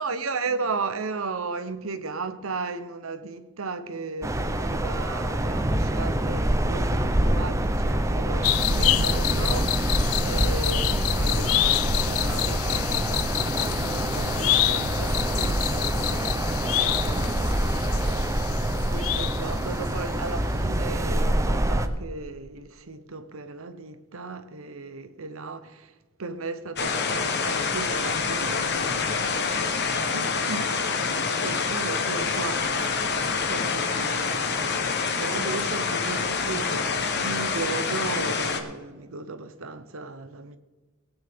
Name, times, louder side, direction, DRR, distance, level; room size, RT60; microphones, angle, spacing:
voice 1, 0.0-10.0 10.2-13.5 13.8-25.9 26.2-29.8 30.1-30.8 31.4-33.0 33.5-34.5 35.2-40.6, right 3 dB, 70° right, 0.9 m, -35 dB
sound 1, 4.2-21.9, right 1 dB, 15° right, 0.6 m, -25 dB
sound 2, 8.4-20.1 20.4-20.5, left 16 dB, 75° left, 0.3 m, -28 dB
sound 3, 26.8-38.6, left 5 dB, 50° left, 1.1 m, -26 dB
19.0 x 9.1 x 3.6 m
head